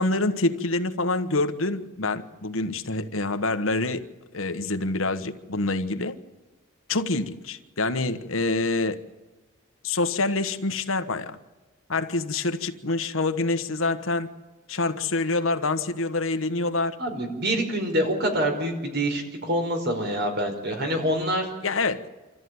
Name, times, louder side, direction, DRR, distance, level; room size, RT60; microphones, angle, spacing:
voice 1, 0.0-4.0 4.3-6.2 6.9-9.0 9.8-11.4 11.9-14.3 14.7-17.0 21.6-22.1, left 2 dB, 80° left, 9 dB, 1.4 m, -26 dB
voice 2, 17.0-21.5, right 1 dB, 55° right, 4 dB, 5.1 m, -26 dB
27.5 x 14.0 x 9.5 m, 1.2 s
head